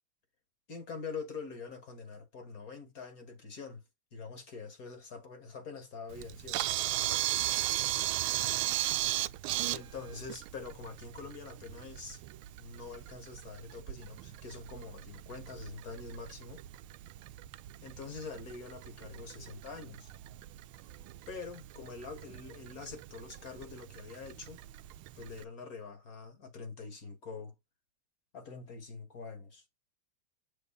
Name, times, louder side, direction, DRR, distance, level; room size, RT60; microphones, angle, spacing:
voice 1, 0.7-3.8 4.1-6.7 9.6-12.2 12.6-16.6 17.8-20.1 21.3-24.6 25.2-27.5 28.3-29.6, left 4 dB, 45° left, 2.3 m, -45 dB
Camera, 6.1-25.4, right 15 dB, 80° right, 1.4 m, -37 dB
7.0 x 3.6 x 5.5 m
omnidirectional pair, 2.3 m